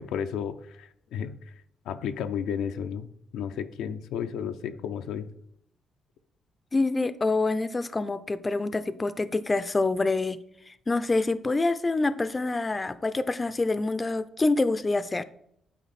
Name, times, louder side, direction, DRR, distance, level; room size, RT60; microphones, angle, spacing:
voice 1, 0.0-1.5 1.9-3.1 3.3-5.3, left 8 dB, 85° left, 9 dB, 0.4 m, -33 dB
voice 2, 6.7-10.4 10.7-15.2, left 3 dB, 25° left, 14 dB, 0.4 m, -26 dB
9.2 x 4.3 x 4.2 m, 0.72 s
cardioid pair, 90°, 0 cm